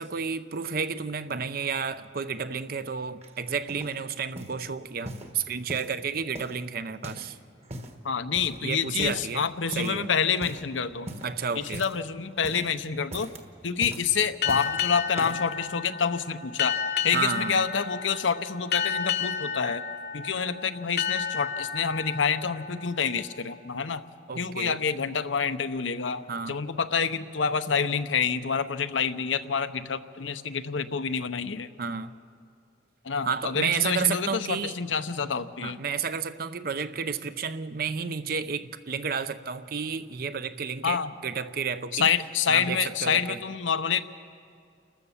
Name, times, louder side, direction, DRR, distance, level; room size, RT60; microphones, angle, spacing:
voice 1, 0.0-7.4 8.6-10.1 11.2-11.8 17.1-17.6 24.3-24.8 26.3-26.6 31.8-32.1 33.2-34.7 35.6-42.1 42.5-43.4, right 6 dB, 50° right, 12 dB, 0.6 m, -31 dB
sound 1, 3.2-4.0 4.4-4.6 5.0-6.0 6.3-7.3 7.6-8.0 8.3-8.7 9.0-9.4 9.7-10.1 10.3-10.7 11.1-12.1 12.3-12.7 13.0-13.4 13.8-14.8 15.1-15.5 16.2-16.3, right 1 dB, 35° right, 1.3 m, -41 dB
voice 2, 8.0-11.2 11.6-13.3 13.6-16.8 17.0-19.8 20.1-24.0 24.4-31.7 33.0-35.8 40.8-41.1 41.9-44.0, left 6 dB, 85° left, 11 dB, 0.8 m, -27 dB
sound 2, 14.4-23.7, left 7 dB, 55° left, 0.9 m, -32 dB
29.5 x 13.5 x 7.1 m, 2.4 s
head